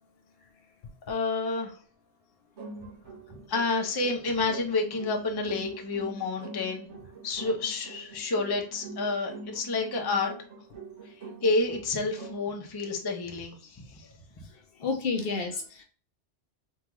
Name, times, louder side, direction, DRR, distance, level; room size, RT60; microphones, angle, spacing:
voice 1, 1.1-1.8 3.5-6.9 7.2-10.3 11.4-14.0, left 3 dB, 30° left, 3 dB, 0.5 m, -29 dB
sound 1, 2.6-12.5, right 3 dB, 75° right, 1.6 m, -44 dB
voice 2, 14.8-15.8, left 4 dB, 65° left, 5 dB, 0.7 m, -30 dB
3.6 x 2.3 x 2.9 m, 0.41 s
omnidirectional pair, 1.2 m